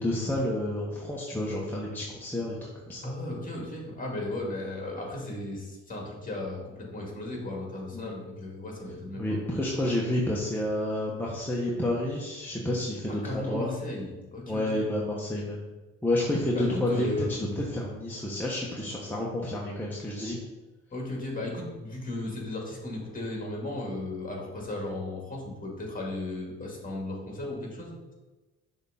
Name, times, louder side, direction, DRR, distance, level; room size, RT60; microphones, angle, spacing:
voice 1, 0.0-2.6 2.9-3.1 7.9-8.1 9.2-13.7 14.5-15.6 16.0-20.4, left 1 dB, 5° left, -4 dB, 1.1 m, -30 dB
voice 2, 3.0-9.4 13.1-14.8 16.5-17.2 20.9-28.1, left 2 dB, 25° left, -1 dB, 2.2 m, -35 dB
6.4 x 3.7 x 5.6 m, 1.2 s
cardioid pair, 90°, 30 cm